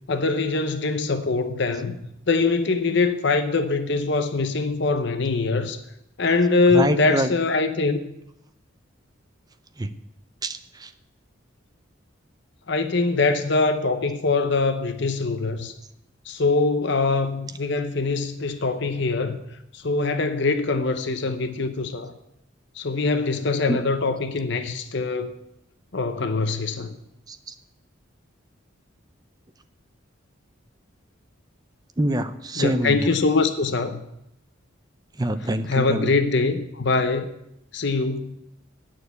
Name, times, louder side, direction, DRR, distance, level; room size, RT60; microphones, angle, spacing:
voice 1, 0.1-2.0 2.3-5.8 6.2-8.0 12.7-15.7 16.3-19.4 19.7-22.1 22.8-25.3 25.9-26.9 32.6-34.1 35.7-37.3 37.7-38.4, left 3 dB, 60° left, 0.8 m, -23 dB
voice 2, 6.7-7.3 9.8-9.9 10.4-10.9 23.7-23.8 27.3-27.4 32.0-33.1 35.2-36.1, right 1 dB, 20° right, 0.6 m, -25 dB
9.0 x 6.7 x 8.2 m
head